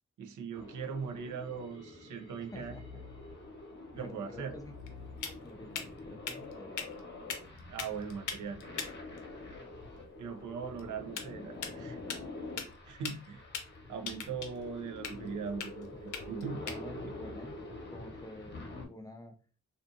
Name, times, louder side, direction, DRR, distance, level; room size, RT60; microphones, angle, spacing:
voice 1, 0.2-2.7 4.0-4.5 7.7-8.6 10.2-12.0 12.9-13.4 13.9-16.6 17.0-17.1, right 6 dB, 80° right, 0.5 m, -40 dB
sound 1, 0.5-18.9, left 2 dB, 35° left, 0.9 m, -46 dB
voice 2, 2.5-3.0 3.9-4.7 5.2-7.0 15.1-15.4 16.7-17.6 17.9-19.4, left 1 dB, 10° left, 0.5 m, -49 dB
sound 2, 3.9-18.7, left 6 dB, 85° left, 0.6 m, -45 dB
2.5 x 2.5 x 2.5 m
cardioid pair, 65°, 30 cm